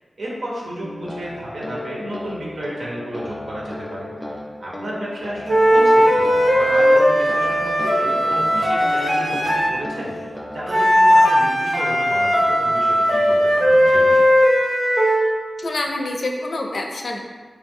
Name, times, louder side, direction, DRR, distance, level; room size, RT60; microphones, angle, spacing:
voice 1, 0.2-4.1 4.6-10.1 10.5-14.3, right 1 dB, 85° right, -4 dB, 0.9 m, -32 dB
sound 1, 0.8-10.8, left 1 dB, 15° left, 0.5 m, -34 dB
sound 2, 5.5-9.8 10.7-15.3, equal, 40° right, 0.6 m, -17 dB
voice 2, 15.6-17.2, left 2 dB, 65° left, 2 dB, 0.4 m, -26 dB
3.2 x 3.2 x 3.5 m, 1.5 s
wide cardioid pair, 105°, 0 cm